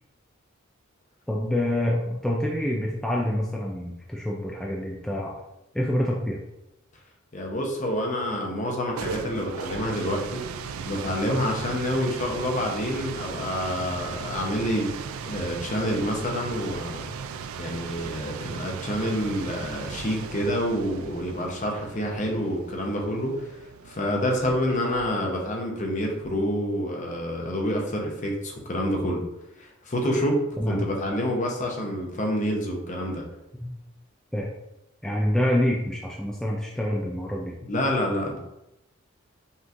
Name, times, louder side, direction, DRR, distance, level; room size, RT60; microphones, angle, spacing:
voice 1, 1.3-5.3 5.7-6.4 30.6-30.8 33.6-33.7 34.3-34.5 35.0-37.6, left 1 dB, 5° left, -3 dB, 0.4 m, -26 dB
voice 2, 7.3-10.5 10.9-14.9 15.2-17.1 17.6-29.2 29.6-33.2 37.6-38.4, equal, 35° left, 0 dB, 0.8 m, -28 dB
sound 1, 8.7-25.4, right 6 dB, 80° right, 0.3 m, -37 dB
5.6 x 3.1 x 2.5 m, 0.89 s
head